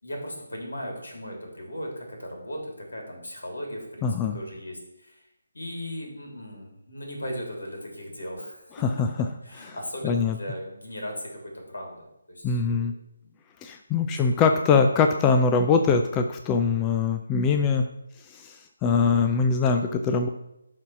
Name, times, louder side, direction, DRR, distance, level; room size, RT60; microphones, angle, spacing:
voice 1, 0.0-5.3 5.5-8.8 9.4-12.9 13.2-13.3 14.0-14.4, equal, 75° left, 1 dB, 3.3 m, -37 dB
voice 2, 4.0-4.4 9.0-9.1 10.0-10.4 12.4-12.9 13.6-17.8 18.3-20.3, left 5 dB, 15° left, 5 dB, 0.5 m, -22 dB
12.0 x 4.1 x 5.9 m, 0.86 s
figure-of-eight pair, 150°, 0 cm